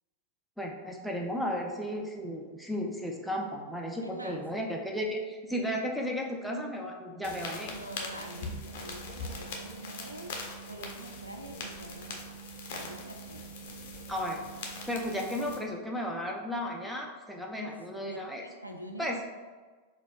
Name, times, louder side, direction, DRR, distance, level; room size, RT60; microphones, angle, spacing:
voice 1, 0.6-7.7 14.1-14.4 14.9-18.4 19.0-19.2, equal, ahead, -1 dB, 0.4 m, -34 dB
voice 2, 4.0-4.4 4.9-5.1 7.7-10.3 10.7-12.4 12.7-13.5 17.6-19.2, right 1 dB, 85° right, 3 dB, 0.3 m, -46 dB
sound 1, 7.2-15.6, left 2 dB, 50° left, 0.5 m, -41 dB
4.1 x 2.3 x 2.5 m, 1.4 s
figure-of-eight pair, 90°, 0 cm